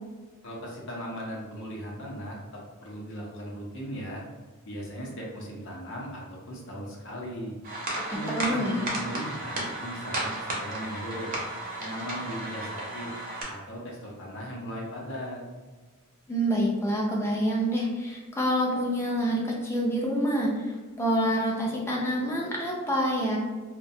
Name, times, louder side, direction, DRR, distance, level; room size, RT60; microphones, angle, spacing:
voice 1, 0.4-4.2 4.6-7.5 8.1-11.3 11.8-13.1 13.5-15.4, equal, 60° left, -3 dB, 0.7 m, -38 dB
sound 1, 7.6-13.4, right 2 dB, 40° right, 0.6 m, -34 dB
voice 2, 8.1-8.9 16.3-23.4, equal, 10° left, -2 dB, 0.4 m, -27 dB
2.3 x 2.2 x 2.7 m, 1.3 s
head